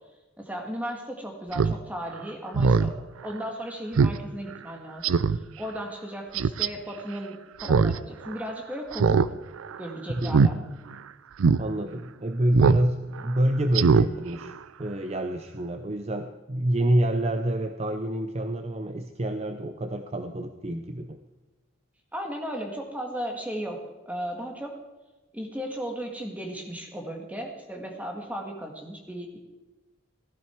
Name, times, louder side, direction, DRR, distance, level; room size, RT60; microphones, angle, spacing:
voice 1, 0.4-2.9 3.2-5.2 5.6-9.3 9.8-10.6 22.1-23.8 24.1-24.7 25.3-29.4, equal, 5° right, 2 dB, 1.9 m, -35 dB
Speech synthesizer, 1.5-1.7 2.1-2.2 2.5-2.9 3.3-3.4 4.0-4.2 4.5-4.6 5.0-5.4 6.3-6.7 7.6-8.0 8.3-8.4 8.9-9.3 9.6-9.8 10.2-10.5 10.9-11.0 11.4-11.6 12.5-12.8 13.2-13.3 13.7-14.1 14.4-14.5, right 5 dB, 80° right, 0.5 m, -21 dB
voice 2, 11.6-14.5 14.8-21.2, right 1 dB, 30° right, 7 dB, 0.6 m, -27 dB
15.5 x 13.5 x 4.6 m, 1.1 s
head